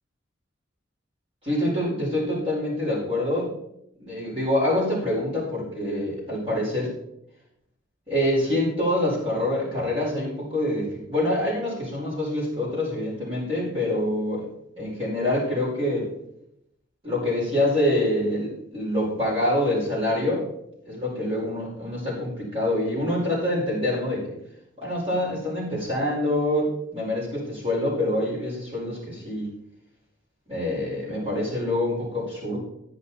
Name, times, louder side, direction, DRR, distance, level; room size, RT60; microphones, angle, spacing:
voice 1, 1.4-3.5 4.0-6.9 8.1-14.5 14.8-16.1 17.0-20.4 20.8-24.4 24.8-29.5 30.5-32.6, left 1 dB, 30° right, -7 dB, 4.8 m, -26 dB
11.0 x 10.5 x 4.2 m, 0.77 s
head